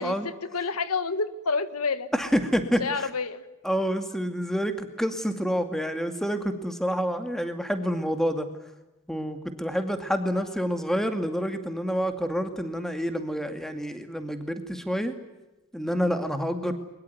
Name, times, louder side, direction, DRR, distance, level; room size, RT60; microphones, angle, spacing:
voice 1, 0.0-2.1 2.8-3.4 10.4-10.5, left 4 dB, 90° left, 13 dB, 1.6 m, -29 dB
voice 2, 2.1-3.1 3.6-8.5 9.1-15.1 15.7-16.7, equal, ahead, 7 dB, 2.3 m, -28 dB
23.0 x 21.5 x 9.6 m, 1.0 s
head